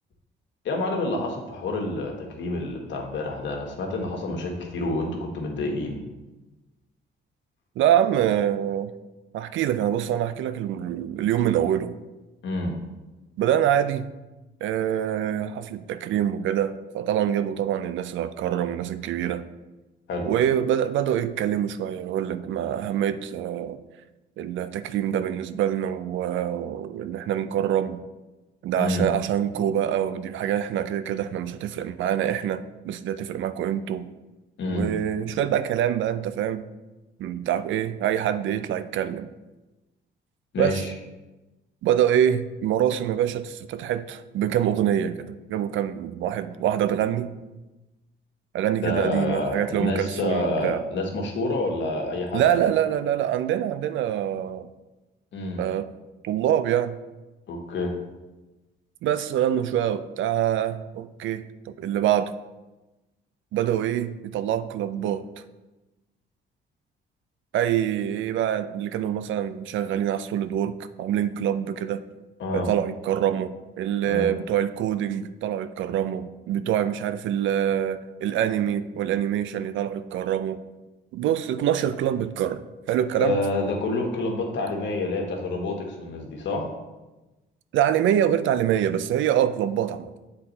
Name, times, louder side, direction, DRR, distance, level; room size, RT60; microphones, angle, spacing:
voice 1, 0.6-6.0 12.4-12.7 20.1-20.2 28.8-29.1 34.6-34.9 40.5-40.9 48.8-52.6 55.3-55.6 57.5-57.9 72.4-72.7 74.0-74.3 83.2-86.7, left 2 dB, 65° left, 1 dB, 1.4 m, -28 dB
voice 2, 7.8-8.9 9.3-12.0 13.4-14.1 14.6-19.4 20.3-23.8 24.4-28.0 28.6-34.1 34.7-36.7 37.2-39.3 40.6-40.8 41.8-47.3 48.5-50.8 52.3-54.7 55.6-55.9 56.2-57.0 59.0-62.3 63.5-65.3 67.5-72.0 72.5-80.6 81.1-82.6 82.9-83.4 87.7-90.1, right 10 dB, 75° right, 12 dB, 0.4 m, -25 dB
7.7 x 4.1 x 4.0 m, 1.1 s
cardioid pair, 90°, 20 cm